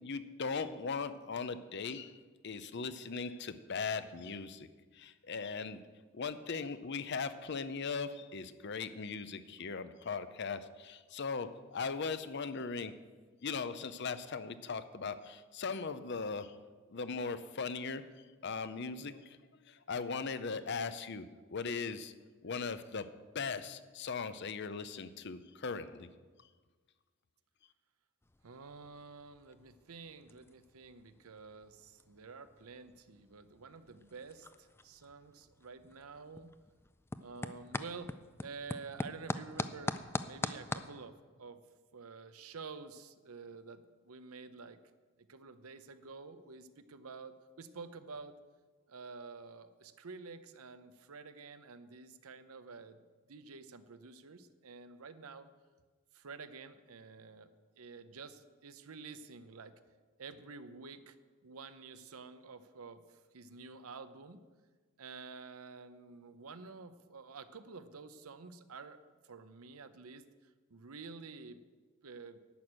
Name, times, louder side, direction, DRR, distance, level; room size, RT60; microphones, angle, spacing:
voice 1, 0.0-4.7 4.9-5.8 6.1-12.9 13.4-16.5 16.9-18.0 18.4-19.4 19.7-21.2 21.5-22.1 22.4-23.1 23.3-26.1, left 5 dB, 50° left, 12 dB, 0.6 m, -39 dB
sound 1, 28.2-40.9, left 2 dB, 10° left, 0.3 m, -44 dB
voice 2, 28.4-36.5 37.2-40.0 40.2-41.6 41.9-44.8 45.2-48.4 48.9-53.0 53.3-55.5 56.1-57.5 57.8-59.8 60.2-61.2 61.4-64.4 65.0-69.0 69.2-71.6 72.0-72.4, right 4 dB, 80° right, 12 dB, 0.7 m, -50 dB
11.5 x 6.2 x 8.7 m, 1.4 s
head